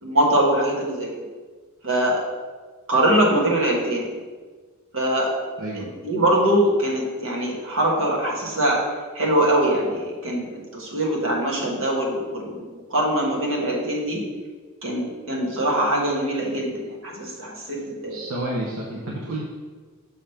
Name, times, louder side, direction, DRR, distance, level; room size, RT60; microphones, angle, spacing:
voice 1, 0.0-1.1 1.8-2.2 2.9-4.1 4.9-5.3 5.7-8.8 9.1-14.2 14.8-18.4, right 1 dB, 65° right, -3 dB, 1.5 m, -23 dB
voice 2, 18.1-19.4, right 1 dB, 80° right, -3 dB, 0.8 m, -30 dB
6.4 x 3.5 x 5.6 m, 1.4 s
head